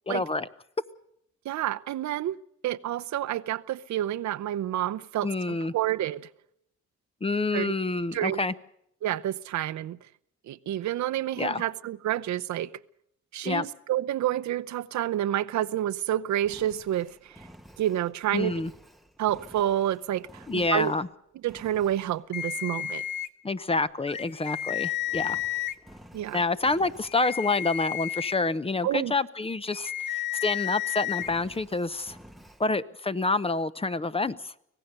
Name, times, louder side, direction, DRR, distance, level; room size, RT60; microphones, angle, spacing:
voice 1, 0.1-0.5 5.2-5.7 7.2-8.5 11.4-11.6 13.4-13.7 18.3-18.7 20.5-21.1 23.4-25.4 26.3-32.2 32.6-34.5, left 3 dB, 20° left, 0.7 m, -28 dB
voice 2, 1.4-2.4 2.6-6.3 7.5-7.7 8.1-8.4 9.0-10.0 10.5-12.7 13.3-17.1 17.8-18.5 19.2-20.9 21.4-23.0 26.1-26.4 28.8-29.1, right 12 dB, 70° right, 0.7 m, -29 dB
Engine, 16.4-21.1 21.5-22.2 25.0-27.3 31.1-32.7, equal, ahead, 1.1 m, -52 dB
sound 1, 22.3-23.3 24.1-25.7 27.0-28.3 29.7-31.3, left 13 dB, 75° left, 0.9 m, -32 dB
25.0 x 17.0 x 6.8 m
cardioid pair, 90°, 30 cm